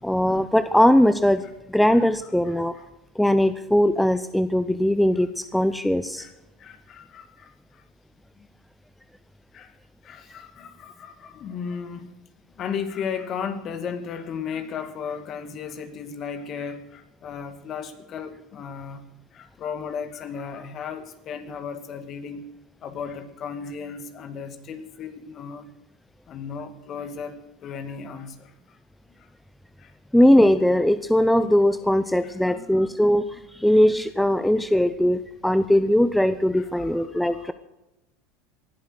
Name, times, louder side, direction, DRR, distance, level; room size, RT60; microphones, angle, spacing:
voice 1, 0.0-1.4 1.7-2.8 3.2-6.3 30.1-37.5, left 1 dB, 5° left, 12 dB, 0.7 m, -20 dB
voice 2, 2.4-2.9 6.2-6.3 6.6-7.8 8.4-8.5 9.5-12.1 12.6-19.0 19.3-22.5 22.8-25.7 26.3-28.8 29.2-29.3 29.8-29.9 32.2-32.9 34.6-34.7 36.6-37.5, left 6 dB, 45° left, 9 dB, 2.1 m, -35 dB
19.0 x 11.5 x 6.4 m, 0.96 s
hypercardioid pair, 90°, 0 cm